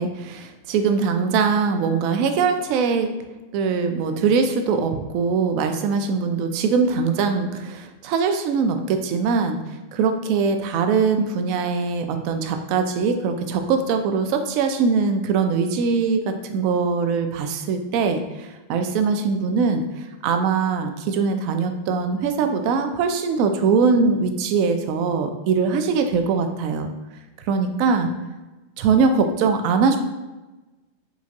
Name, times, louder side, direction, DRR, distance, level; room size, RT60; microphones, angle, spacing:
voice 1, 0.0-3.1 3.5-26.9 27.5-28.1 28.8-30.0, right 5 dB, 45° right, 6 dB, 0.3 m, -22 dB
3.7 x 2.5 x 2.7 m, 1.1 s
figure-of-eight pair, 90°, 0 cm